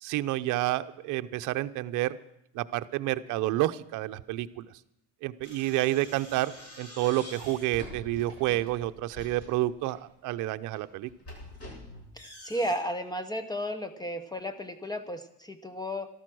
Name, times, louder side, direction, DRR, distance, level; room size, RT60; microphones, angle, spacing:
voice 1, 0.0-2.2 2.5-4.7 5.2-6.5 6.8-11.1, right 16 dB, 60° right, 10 dB, 0.7 m, -29 dB
sound 1, 5.4-10.0 10.6-12.7, left 1 dB, 45° left, 7.6 m, -46 dB
voice 2, 12.2-16.1, equal, 10° left, 11 dB, 0.8 m, -34 dB
13.5 x 12.5 x 6.2 m, 0.78 s
cardioid pair, 120°, 35 cm